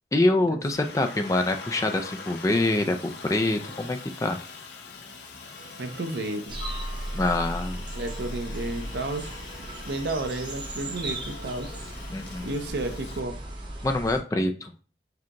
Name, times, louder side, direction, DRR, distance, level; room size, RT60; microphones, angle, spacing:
voice 1, 0.1-4.4 7.1-7.9 12.1-12.5 13.8-14.7, left 2 dB, 20° left, 6 dB, 0.3 m, -25 dB
Aircraft, 0.7-13.2, left 4 dB, 75° left, 0.6 m, -43 dB
voice 2, 5.8-6.6 7.9-9.3 9.7-11.7 12.4-13.4, right 2 dB, 70° right, 6 dB, 0.6 m, -32 dB
sound 1, 6.5-14.2, right 1 dB, 25° right, 0.6 m, -36 dB
4.9 x 2.3 x 2.9 m, 0.37 s
head